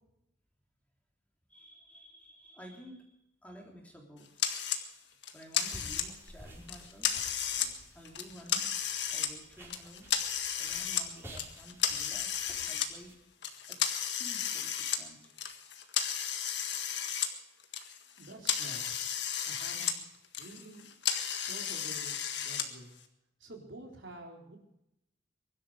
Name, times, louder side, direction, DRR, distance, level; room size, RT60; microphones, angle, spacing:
voice 1, 1.5-3.1 3.4-4.3 4.5-7.1 7.9-8.6 9.1-10.1 10.6-13.1 13.7-13.8 14.2-15.3, equal, 10° left, 0 dB, 3.4 m, -52 dB
sound 1, 4.4-4.8 5.2-6.3 6.7-7.7 8.1-9.3 9.7-11.1 11.4-12.9 13.4-17.3 17.6-20.0 20.2-22.7, left 8 dB, 65° left, 1.8 m, -33 dB
sound 2, 5.6-13.1, right 1 dB, 15° right, 4.7 m, -52 dB
voice 2, 18.2-18.8 19.5-20.1 20.4-20.9 21.5-22.9 23.4-24.6, right 2 dB, 80° right, 1 dB, 4.0 m, -49 dB
23.0 x 12.0 x 5.0 m, 0.80 s
head